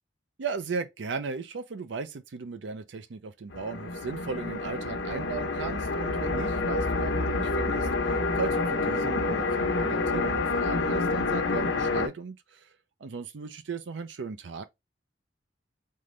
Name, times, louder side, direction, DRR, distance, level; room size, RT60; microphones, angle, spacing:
voice 1, 0.4-12.7 13.0-14.6, right 4 dB, 70° right, 0.5 m, -36 dB
sound 1, 3.5-12.1, left 3 dB, 80° left, 0.9 m, -28 dB
3.8 x 3.7 x 3.1 m
head